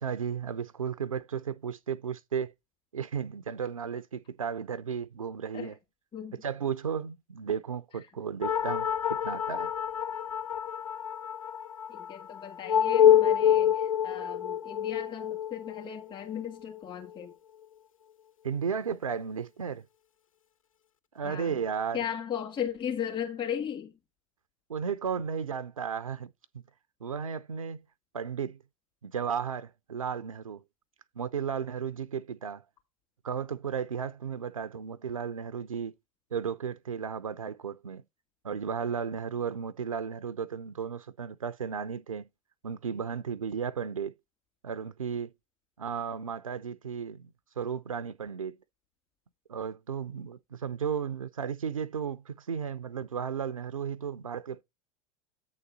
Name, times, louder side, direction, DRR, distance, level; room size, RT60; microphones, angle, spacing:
voice 1, 0.0-2.5 2.9-5.8 6.4-9.7 18.4-19.8 21.1-22.0 24.7-26.3 27.0-27.8 28.1-28.6 29.0-30.6 31.2-32.6 33.2-35.9 36.3-38.0 38.4-42.3 42.6-44.1 44.6-45.3 45.8-47.3 47.6-48.5 49.5-54.6, right 7 dB, 85° right, 0.5 m, -34 dB
sound 1, 8.4-17.2, left 9 dB, 80° left, 0.4 m, -27 dB
voice 2, 11.9-17.3 21.2-21.6 21.9-23.9, left 9 dB, 30° left, 2.1 m, -36 dB
8.3 x 3.9 x 6.1 m
figure-of-eight pair, 85°, 17 cm